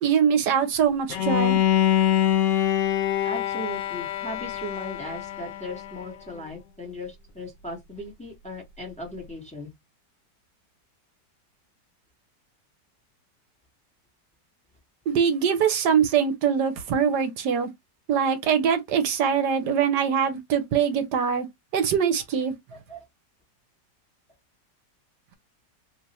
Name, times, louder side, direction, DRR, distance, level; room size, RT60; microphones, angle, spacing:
voice 1, 0.0-1.6 15.1-17.7 18.1-21.5 21.7-22.5, right 7 dB, 75° right, 1.3 m, -23 dB
Bowed string instrument, 1.1-6.1, left 11 dB, 85° left, 1.3 m, -24 dB
voice 2, 3.2-9.7 22.7-23.0, left 1 dB, 5° left, 1.0 m, -37 dB
3.1 x 2.4 x 4.0 m
omnidirectional pair, 1.9 m